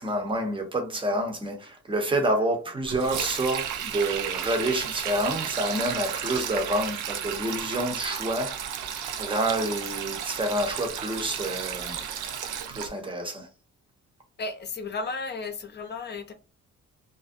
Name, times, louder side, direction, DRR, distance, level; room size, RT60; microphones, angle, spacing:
voice 1, 0.0-8.6 9.2-12.0 12.7-13.5, right 1 dB, 15° right, 0.7 m, -28 dB
Sink (filling or washing), 2.8-12.9, right 8 dB, 90° right, 0.5 m, -33 dB
voice 2, 14.4-16.3, left 3 dB, 35° left, 0.6 m, -34 dB
2.4 x 2.0 x 2.6 m
cardioid pair, 90°, 30 cm